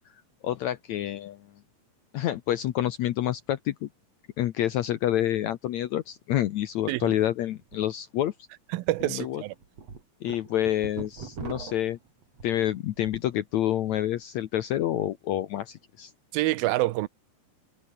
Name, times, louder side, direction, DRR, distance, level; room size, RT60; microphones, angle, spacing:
voice 1, 0.4-1.5 2.1-3.9 4.4-8.3 9.0-9.4 10.2-12.0 12.4-16.1, left 12 dB, 75° left, 1.7 m, -28 dB
sound 1, 7.6-7.8 8.2-8.3 8.9-9.1 9.5-13.3 13.7-14.1, right 5 dB, 45° right, 4.6 m, -41 dB
voice 2, 8.7-9.5 16.3-17.1, right 18 dB, 85° right, 2.6 m, -27 dB
omnidirectional pair, 4.2 m